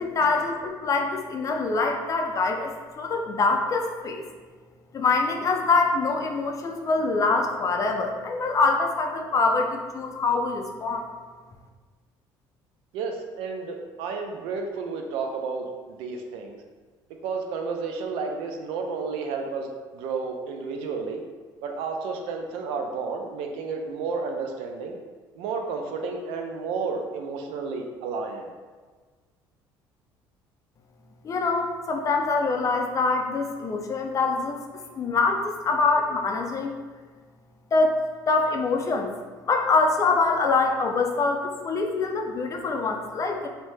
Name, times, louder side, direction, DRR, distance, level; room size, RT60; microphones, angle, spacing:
voice 1, 0.0-4.3 4.9-11.1 31.2-34.6 35.0-36.8 37.7-38.0 38.3-39.1 39.5-43.5, left 3 dB, 35° left, 3 dB, 0.4 m, -24 dB
voice 2, 12.9-16.6 17.2-21.2 21.6-25.0 25.4-28.5, right 4 dB, 85° right, 3 dB, 0.4 m, -31 dB
2.7 x 2.0 x 3.2 m, 1.4 s
supercardioid pair, 90°, 9 cm